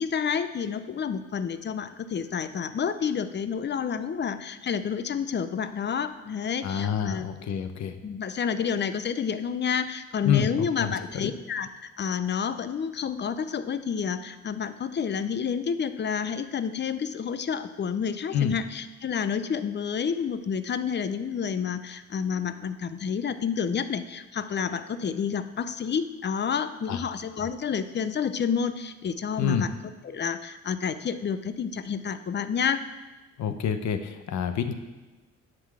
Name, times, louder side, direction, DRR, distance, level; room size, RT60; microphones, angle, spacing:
voice 1, 0.0-7.3 8.0-29.7 30.0-32.8, left 7 dB, 35° left, 11 dB, 0.6 m, -29 dB
voice 2, 6.6-8.0 10.2-11.3 18.3-18.6 26.9-27.0 29.4-29.7 33.4-34.7, left 8 dB, 65° left, 8 dB, 0.9 m, -27 dB
10.5 x 3.9 x 7.4 m, 1.2 s
cardioid pair, 90°, 30 cm